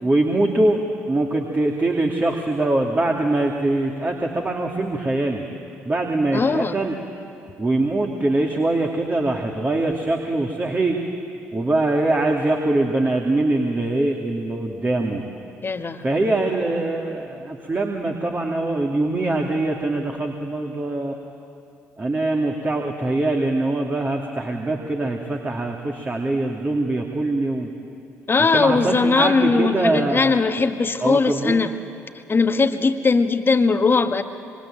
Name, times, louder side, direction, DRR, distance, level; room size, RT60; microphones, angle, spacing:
voice 1, 0.0-0.8 1.1-5.5 5.8-6.9 7.6-11.0 11.5-15.2 16.0-21.1 22.0-27.7 28.5-30.4 31.0-31.7, right 2 dB, 25° right, 1 dB, 2.7 m, -23 dB
voice 2, 6.3-6.7 15.6-16.0 28.3-31.7 32.3-34.2, left 4 dB, 30° left, 8 dB, 1.6 m, -19 dB
26.5 x 25.0 x 9.0 m, 2.5 s
figure-of-eight pair, 50°, 7 cm